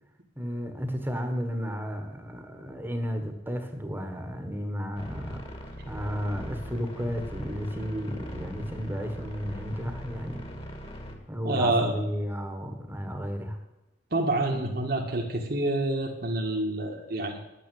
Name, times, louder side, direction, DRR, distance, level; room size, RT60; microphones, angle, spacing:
voice 1, 0.4-10.4 11.3-13.6 14.5-14.7, equal, 10° right, 5 dB, 1.5 m, -33 dB
sound 1, 5.0-11.1, equal, 30° left, 2.0 m, -40 dB
voice 2, 11.4-12.0 14.1-17.4, right 2 dB, 55° right, 1 dB, 1.8 m, -27 dB
10.0 x 9.1 x 9.4 m, 0.96 s
head